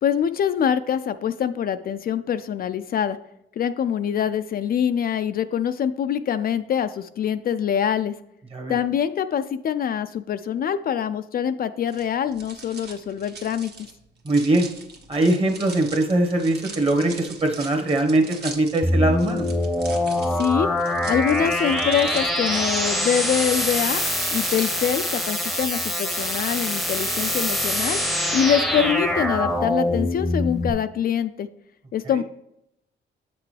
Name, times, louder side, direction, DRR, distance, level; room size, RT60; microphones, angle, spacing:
voice 1, 0.0-3.2 3.6-8.1 8.7-13.7 20.4-20.7 21.1-24.0 24.3-28.0 28.3-31.5 31.9-32.2, left 8 dB, 50° left, 10 dB, 0.4 m, -24 dB
sound 1, 11.9-25.7, right 4 dB, 55° right, 1.3 m, -41 dB
voice 2, 14.2-14.7 15.1-19.5, right 2 dB, 30° right, 4 dB, 1.3 m, -21 dB
sound 2, 18.8-30.7, left 1 dB, ahead, 0.8 m, -24 dB
7.9 x 5.9 x 3.3 m, 0.82 s
cardioid pair, 90°, 20 cm